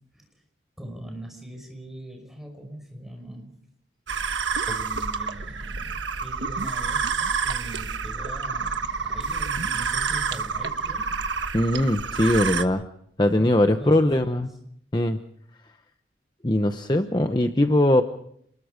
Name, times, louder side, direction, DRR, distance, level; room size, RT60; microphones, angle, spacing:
voice 1, 0.8-3.6 4.7-11.1 13.7-14.6, right 1 dB, ahead, 3 dB, 5.6 m, -41 dB
sound 1, 4.1-12.6, right 5 dB, 90° right, 1.3 m, -28 dB
voice 2, 11.5-12.8 13.2-14.5 14.9-15.2 16.4-18.0, left 1 dB, 25° left, 7 dB, 0.8 m, -21 dB
29.0 x 21.0 x 5.1 m, 0.69 s
head